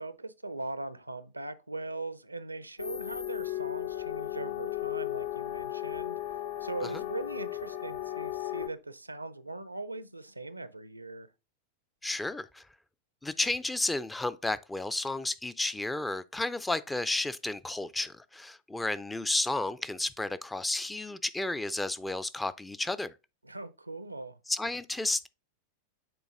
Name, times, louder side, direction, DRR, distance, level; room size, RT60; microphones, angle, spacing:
voice 1, 0.0-6.2 6.6-11.3 23.4-24.4, right 2 dB, 85° right, 0.5 m, -40 dB
sound 1, 2.8-8.7, left 14 dB, 65° left, 0.9 m, -35 dB
voice 2, 12.0-12.6 13.2-23.1 24.5-25.3, left 2 dB, 10° left, 0.3 m, -32 dB
6.9 x 4.0 x 3.6 m
figure-of-eight pair, 90°, 0 cm